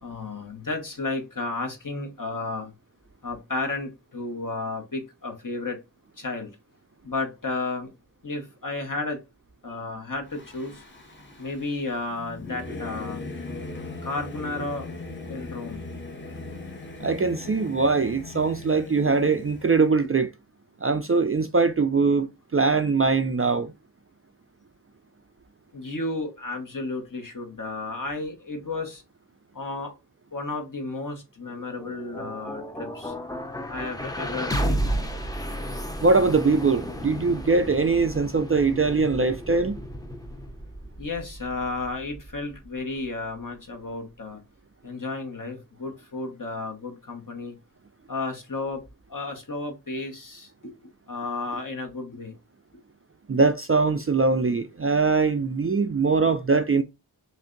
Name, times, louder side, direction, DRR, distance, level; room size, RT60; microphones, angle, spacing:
voice 1, 0.0-2.7 3.2-5.8 6.2-6.5 7.0-7.9 8.2-9.2 9.6-10.8 11.4-13.2 14.0-14.9 15.3-15.8 25.7-29.0 29.5-29.9 30.3-33.1 33.7-35.1 41.0-44.4 44.8-47.5 48.1-48.8 49.1-50.7 51.1-52.3, left 3 dB, 50° left, 1.2 m, -33 dB
Singing / Musical instrument, 10.3-19.8, left 3 dB, 25° left, 1.1 m, -39 dB
voice 2, 17.0-20.3 20.8-23.7 36.0-39.8 53.3-56.8, right 4 dB, 35° right, 0.4 m, -22 dB
sound 1, 31.5-43.6, equal, 10° left, 0.6 m, -33 dB
3.3 x 2.6 x 3.8 m
wide cardioid pair, 40°, 42 cm